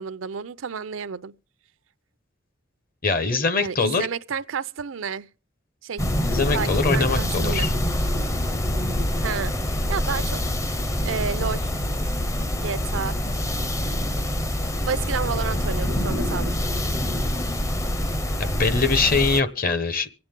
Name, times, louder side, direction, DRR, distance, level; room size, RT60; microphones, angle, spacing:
voice 1, 0.0-1.3 3.6-5.3 5.8-6.0 6.5-7.7 9.2-10.6 11.0-11.7 12.6-13.2 14.9-16.5, right 6 dB, 85° right, 0.5 m, -31 dB
voice 2, 3.0-4.1 6.2-7.7 18.4-20.1, left 4 dB, 45° left, 1.1 m, -23 dB
sound 1, 6.0-19.4, left 1 dB, 15° left, 0.6 m, -25 dB
24.5 x 8.6 x 3.7 m
head